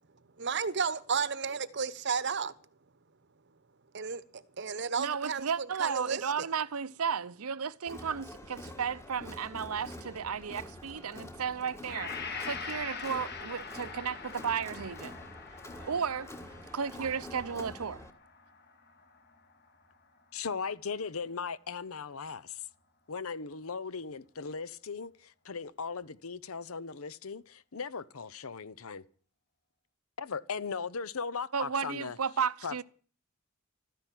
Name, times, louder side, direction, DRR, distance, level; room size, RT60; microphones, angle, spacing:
voice 1, 0.4-2.5 3.9-6.5, right 5 dB, 55° right, 0.9 m, -33 dB
voice 2, 5.0-12.1 12.4-15.1 15.8-16.3 16.7-18.0 31.5-32.8, right 6 dB, 85° right, 0.7 m, -34 dB
Crowd, 7.9-18.1, left 1 dB, 15° left, 1.4 m, -47 dB
Gong, 11.9-19.9, left 5 dB, 50° left, 2.0 m, -44 dB
voice 3, 20.3-22.6 23.1-29.0 30.2-32.2 32.6-32.8, left 5 dB, 75° left, 0.8 m, -38 dB
13.5 x 10.5 x 9.0 m
head